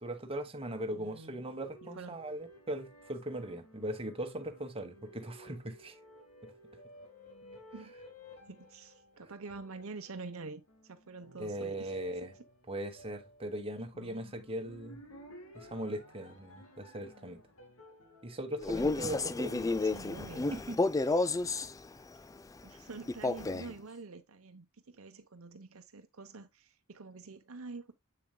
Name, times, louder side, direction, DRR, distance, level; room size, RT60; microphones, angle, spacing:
voice 1, 0.0-6.0 6.4-6.5 11.4-12.3 12.7-15.0 15.5-17.4 18.2-19.5 20.5-20.8 21.1-21.2, right 1 dB, 25° right, 1.2 m, -39 dB
voice 2, 0.8-1.4 1.9-2.2 7.7-7.9 8.5-11.9 19.4-20.5 22.6-27.9, right 3 dB, 70° right, 0.8 m, -47 dB
sound 1, 1.0-19.6, left 1 dB, 85° left, 2.5 m, -56 dB
Male speech man speaking, 18.6-21.7 23.1-23.7, left 3 dB, 15° left, 0.3 m, -31 dB
7.9 x 7.0 x 2.2 m
head